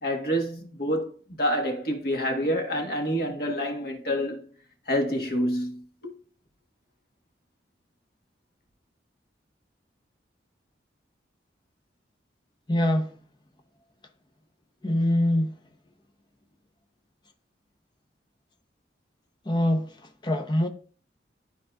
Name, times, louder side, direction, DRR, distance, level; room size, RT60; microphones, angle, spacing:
voice 1, 0.0-4.4 4.9-6.1, equal, 55° left, 1.5 m, -28 dB
voice 2, 12.7-13.1 14.8-15.6 19.4-20.7, left 1 dB, 25° left, 0.8 m, -24 dB
12.5 x 4.2 x 2.5 m
head